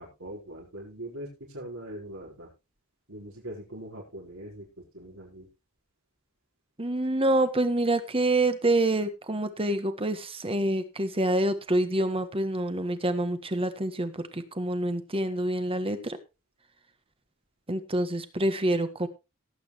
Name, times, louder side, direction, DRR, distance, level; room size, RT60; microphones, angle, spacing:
voice 1, 0.0-2.5 3.1-5.5, right 1 dB, 70° right, -2 dB, 5.0 m, -42 dB
voice 2, 6.8-16.2 17.7-19.1, right 1 dB, 25° right, 10 dB, 1.5 m, -27 dB
17.5 x 8.8 x 3.1 m, 0.28 s
head